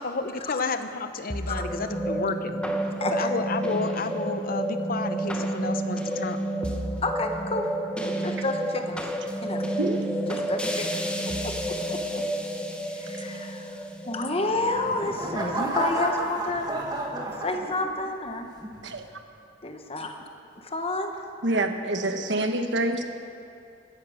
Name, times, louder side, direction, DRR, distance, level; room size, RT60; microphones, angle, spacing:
voice 1, 0.0-2.6 3.1-6.4, left 4 dB, 50° left, 9 dB, 0.7 m, -31 dB
sound 1, 1.3-15.7, right 1 dB, 5° left, 0.9 m, -30 dB
voice 2, 3.0-3.3 7.0-7.7 8.0-9.0 9.4-9.6 10.3-10.9 11.3-12.2 12.9-13.7 14.0-16.7 17.4-18.5 19.6-20.1 20.6-21.1, left 2 dB, 30° left, 5 dB, 1.1 m, -30 dB
sound 2, 14.5-18.1 18.6-19.0, right 1 dB, 20° right, 1.8 m, -31 dB
voice 3, 21.4-23.0, right 1 dB, 65° right, 6 dB, 1.2 m, -26 dB
16.5 x 10.5 x 6.4 m, 2.6 s
head